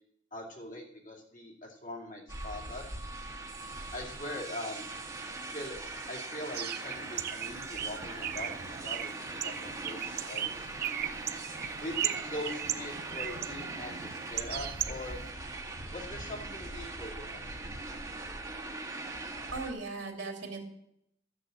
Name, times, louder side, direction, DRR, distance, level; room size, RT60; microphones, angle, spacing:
voice 1, 0.3-2.9 3.9-4.9 5.5-5.8 6.1-9.2 9.4-10.7 11.8-15.2 15.9-17.6, left 1 dB, 40° left, -2 dB, 2.5 m, -42 dB
sound 1, 2.3-19.7, right 2 dB, 20° right, 1.5 m, -41 dB
Bird, 6.5-15.3, right 10 dB, 50° right, 0.6 m, -37 dB
voice 2, 19.5-20.7, right 3 dB, 65° right, 2 dB, 2.9 m, -38 dB
13.0 x 6.7 x 7.6 m, 0.77 s
head